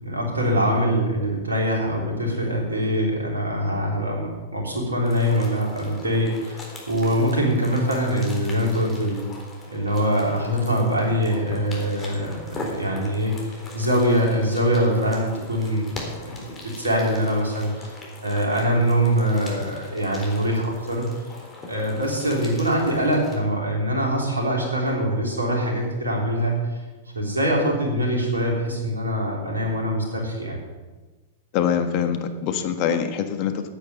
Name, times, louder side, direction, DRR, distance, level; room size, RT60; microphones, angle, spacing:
voice 1, 0.0-9.2 9.7-15.9 16.2-17.9 18.2-21.1 21.7-26.6 27.2-30.6, equal, 90° right, 0 dB, 3.5 m, -23 dB
sound 1, 5.0-23.3, left 2 dB, 20° left, 3.8 m, -41 dB
voice 2, 31.5-33.7, left 8 dB, 45° left, 8 dB, 1.4 m, -24 dB
9.8 x 9.4 x 7.7 m, 1.2 s
hypercardioid pair, 100°, 0 cm